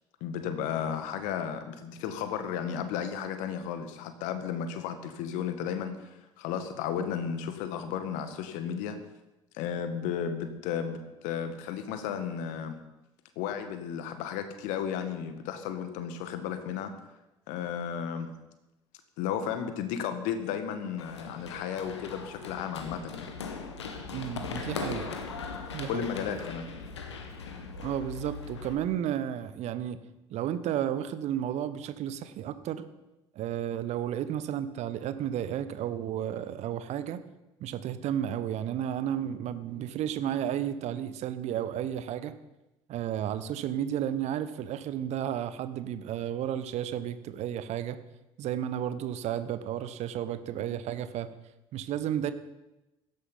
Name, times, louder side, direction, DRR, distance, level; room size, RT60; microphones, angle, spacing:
voice 1, 0.2-9.0 9.5-12.8 13.4-16.9 17.5-18.3 19.2-23.3 25.9-26.7, left 8 dB, 60° left, 8 dB, 1.9 m, -34 dB
Run, 21.0-28.7, left 5 dB, 80° left, 1.6 m, -39 dB
voice 2, 24.1-25.1 25.7-26.1 27.8-30.0 30.3-32.9 33.3-37.2 37.6-42.4 42.9-48.0 48.4-51.3 51.7-52.3, right 10 dB, 50° right, 12 dB, 1.2 m, -32 dB
16.5 x 13.5 x 5.6 m, 0.97 s
figure-of-eight pair, 60°, 14 cm